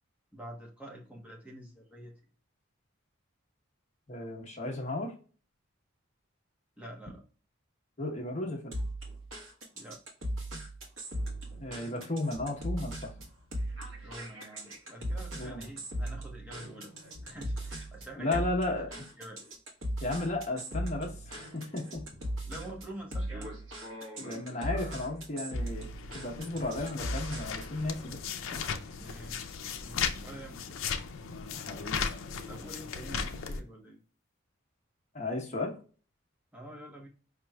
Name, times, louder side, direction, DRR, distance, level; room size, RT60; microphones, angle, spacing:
voice 1, 0.3-2.1 6.8-7.2 9.8-10.0 14.0-16.9 17.2-18.5 19.2-19.4 22.5-23.5 28.9-30.8 32.5-34.0 36.5-37.1, right 1 dB, 5° right, -2 dB, 0.8 m, -46 dB
voice 2, 4.1-5.1 8.0-8.7 11.6-13.1 15.4-15.7 18.2-19.1 20.0-22.1 24.2-25.9 26.1-28.7 31.5-32.1 35.1-35.7, left 2 dB, 35° left, 1 dB, 0.9 m, -34 dB
sound 1, 8.7-27.8, right 1 dB, 75° right, 1.3 m, -38 dB
sound 2, 25.5-33.6, left 6 dB, 70° left, 0.5 m, -37 dB
5.1 x 3.0 x 2.2 m, 0.38 s
head